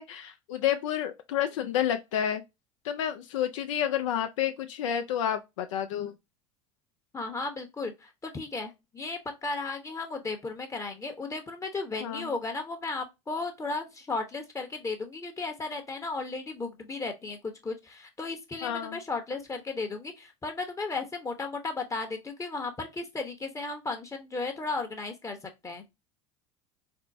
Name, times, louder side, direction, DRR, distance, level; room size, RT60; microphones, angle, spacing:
voice 1, 0.0-2.4 2.8-6.1 12.0-12.3 18.6-19.0, left 10 dB, 75° left, 0.4 m, -30 dB
voice 2, 7.1-25.4 25.6-25.9, left 3 dB, 20° left, 0.8 m, -35 dB
4.3 x 2.0 x 2.5 m
hypercardioid pair, 80°, 16 cm